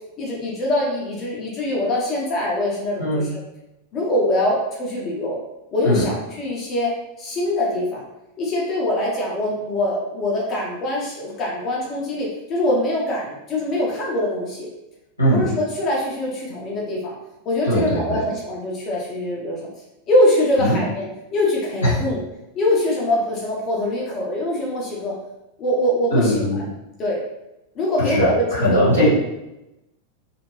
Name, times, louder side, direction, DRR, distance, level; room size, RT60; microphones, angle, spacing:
voice 1, 0.2-3.3 3.9-5.4 5.7-6.9 7.2-8.0 8.4-14.7 15.3-17.1 17.5-19.7 20.1-21.0 21.3-22.2 22.5-25.1 25.6-26.4 27.0-27.2 27.8-28.9, left 1 dB, 30° left, -4 dB, 0.6 m, -23 dB
voice 2, 15.2-15.5 17.6-18.2 20.6-20.8 21.8-22.0 26.1-26.6 28.0-29.1, equal, 90° right, -10 dB, 1.3 m, -19 dB
2.8 x 2.4 x 3.0 m, 0.94 s
figure-of-eight pair, 90°, 0 cm